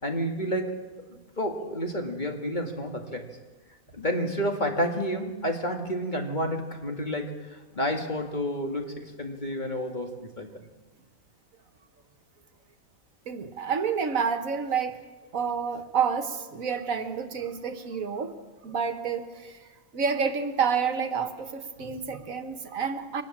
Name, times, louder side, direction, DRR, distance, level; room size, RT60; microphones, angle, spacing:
voice 1, 0.0-0.8 1.1-3.3 3.9-10.5, equal, 30° left, 3 dB, 2.3 m, -30 dB
voice 2, 13.3-15.0 15.3-18.3 18.6-19.6 19.9-23.2, right 6 dB, 70° right, 8 dB, 1.8 m, -29 dB
23.5 x 19.5 x 7.4 m, 1.2 s
omnidirectional pair, 1.5 m